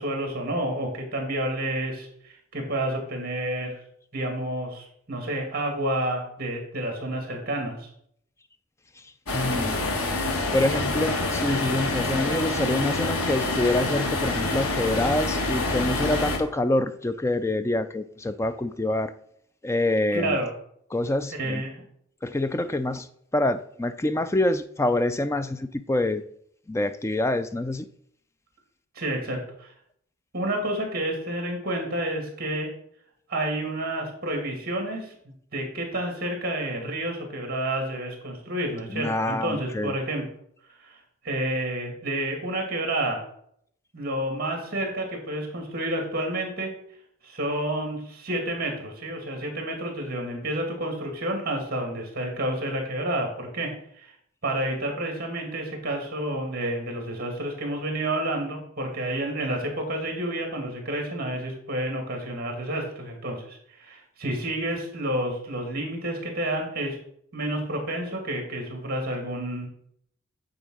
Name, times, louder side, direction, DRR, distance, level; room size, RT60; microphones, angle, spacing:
voice 1, 0.0-3.8 4.1-7.9 20.1-20.5 21.4-21.8 29.0-29.7 30.3-32.7 33.3-40.3 40.8-41.0 41.2-43.2 43.9-46.7 47.2-53.7 54.0-54.1 54.4-67.0 67.3-69.7, right 1 dB, 45° right, 3 dB, 2.3 m, -30 dB
sound 1, 9.3-16.4, left 2 dB, 90° left, 1.4 m, -26 dB
voice 2, 9.3-9.9 10.5-19.1 19.6-20.4 20.9-21.6 22.2-23.1 23.3-26.2 26.7-27.9 38.9-39.9, left 1 dB, 15° left, 11 dB, 0.3 m, -26 dB
8.9 x 3.8 x 6.3 m, 0.69 s
head